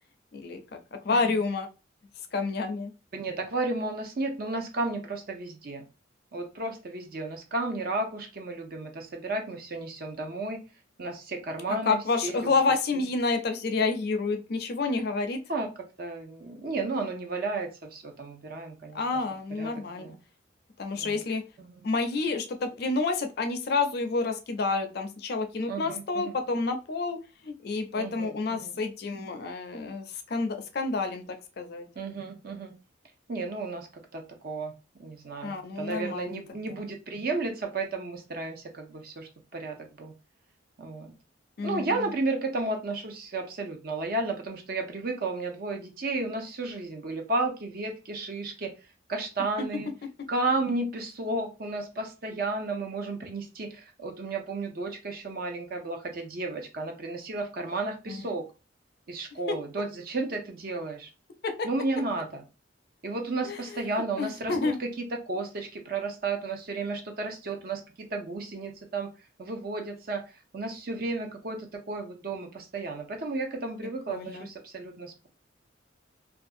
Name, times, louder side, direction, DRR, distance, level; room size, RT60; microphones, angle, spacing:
voice 1, 0.3-1.7 2.3-2.9 11.8-15.4 18.9-20.2 20.8-21.4 21.8-27.2 27.4-31.9 35.4-36.4 36.7-36.8 41.6-42.1 58.1-58.3 59.5-59.6 61.4-61.7 63.4-64.8 74.1-74.5, left 3 dB, 55° left, 7 dB, 0.4 m, -29 dB
voice 2, 3.1-5.8 6.3-10.6 11.0-12.4 15.5-15.7 16.0-19.0 19.6-19.7 20.0-20.1 20.9-21.3 21.6-21.7 25.7-26.4 28.0-28.7 32.0-32.7 33.3-33.9 34.1-34.7 35.0-40.1 40.8-41.1 41.6-48.7 49.1-49.9 50.3-58.4 59.1-61.1 61.6-62.4 63.0-69.1 69.4-70.2 70.5-75.3, right 3 dB, 50° right, 4 dB, 0.6 m, -33 dB
2.5 x 2.3 x 2.5 m, 0.30 s
head